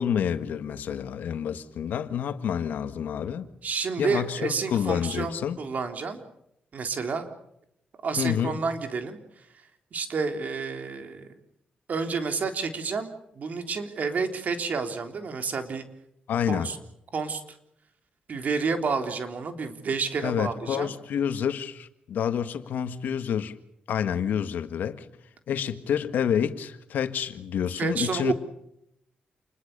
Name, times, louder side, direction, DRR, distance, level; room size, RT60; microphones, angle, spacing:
voice 1, 0.0-3.5 4.0-5.6 8.2-8.6 16.3-16.7 20.2-23.6 23.9-25.1 25.5-28.3, left 8 dB, 85° left, 1.7 m, -28 dB
voice 2, 3.6-6.2 6.7-7.3 8.0-9.2 9.9-11.3 11.9-15.8 16.5-16.8 17.1-17.4 18.3-20.9 27.8-28.3, right 5 dB, 65° right, 3.6 m, -30 dB
28.5 x 21.5 x 6.8 m
cardioid pair, 70°, 3 cm